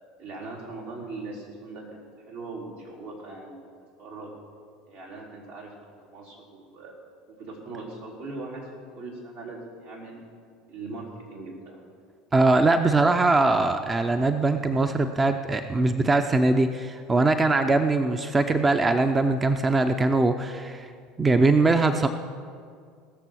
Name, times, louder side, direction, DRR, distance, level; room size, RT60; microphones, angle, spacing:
voice 1, 0.2-3.7 4.0-4.3 4.9-6.9 7.3-10.2 10.7-11.8, right 3 dB, 85° right, -6 dB, 4.1 m, -40 dB
voice 2, 12.3-20.9 21.2-22.1, right 3 dB, 20° right, 8 dB, 0.7 m, -21 dB
18.5 x 6.8 x 6.3 m, 2.1 s
hypercardioid pair, 75°, 0 cm